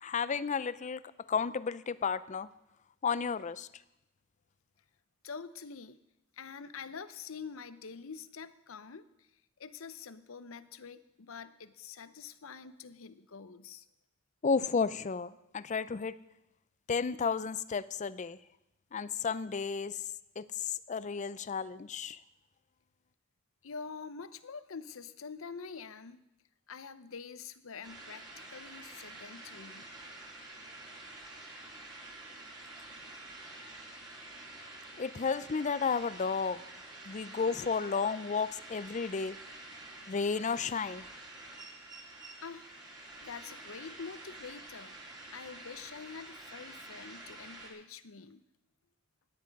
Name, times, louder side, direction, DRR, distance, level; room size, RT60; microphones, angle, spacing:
voice 1, 0.0-1.0 1.3-2.5 3.0-3.7 14.4-16.2 16.9-18.4 18.9-20.0 20.4-22.2 35.0-36.6 37.1-39.4 40.1-41.1, left 5 dB, 35° left, 17 dB, 0.4 m, -32 dB
voice 2, 5.2-6.0 6.3-9.3 9.6-13.9 23.6-26.2 26.7-29.9 42.4-42.7 43.0-45.0 45.3-48.4, left 5 dB, 75° left, 14 dB, 0.7 m, -46 dB
sound 1, 27.8-47.7, right 2 dB, 20° right, 2.9 m, -48 dB
17.0 x 11.0 x 5.3 m, 0.90 s
head